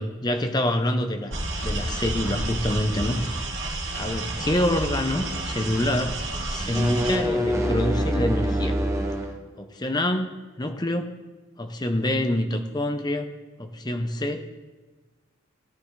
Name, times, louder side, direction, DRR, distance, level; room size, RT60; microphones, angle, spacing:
voice 1, 0.0-3.2 3.9-8.8 9.6-11.1 11.6-13.3 13.6-14.5, left 1 dB, 20° left, 7 dB, 0.7 m, -26 dB
sound 1, 1.3-7.2, right 2 dB, 65° right, 2.8 m, -30 dB
sound 2, 6.6-9.4, equal, 15° right, 1.0 m, -25 dB
18.0 x 10.5 x 3.2 m, 1.2 s
head